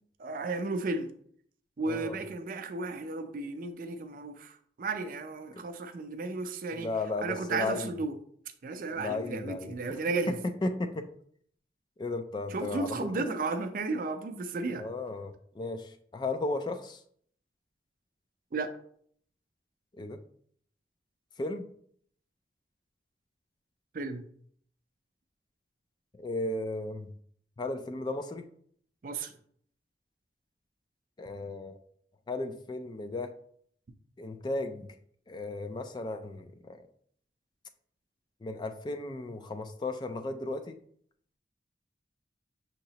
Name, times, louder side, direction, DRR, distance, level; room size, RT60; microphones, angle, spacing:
voice 1, 0.2-1.1 1.8-6.9 7.2-8.1 8.6-10.4 12.5-14.9 18.5-18.8 23.9-24.2 29.0-29.3, right 3 dB, 50° right, 0.4 m, -34 dB
voice 2, 1.9-2.2 6.7-8.0 9.0-10.0 10.3-10.4 10.6-11.1 12.0-13.4 14.8-17.0 20.0-20.2 21.4-21.6 26.2-27.1 27.6-28.4 31.2-31.8 32.3-33.3 34.2-34.9 35.3-36.8 38.4-40.8, left 2 dB, 25° left, 0.3 m, -35 dB
6.4 x 2.9 x 2.8 m
head